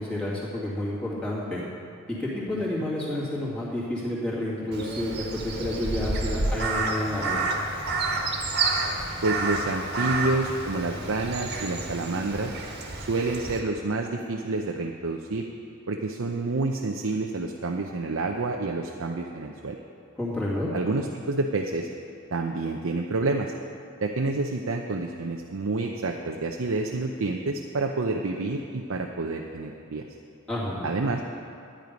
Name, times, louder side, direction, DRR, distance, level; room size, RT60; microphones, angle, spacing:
voice 1, 0.0-1.6 2.1-7.4 20.2-20.7 30.5-30.9, left 1 dB, 5° left, -8 dB, 2.4 m, -30 dB
voice 2, 2.5-2.9 9.2-12.5 12.9-15.5 15.9-19.8 20.7-21.9 22.3-23.5 24.0-30.0 30.8-31.2, right 3 dB, 75° right, 2 dB, 0.7 m, -28 dB
Crow, 4.7-13.6, right 3 dB, 50° right, 1.5 m, -29 dB
12.5 x 9.9 x 5.2 m, 2.6 s
head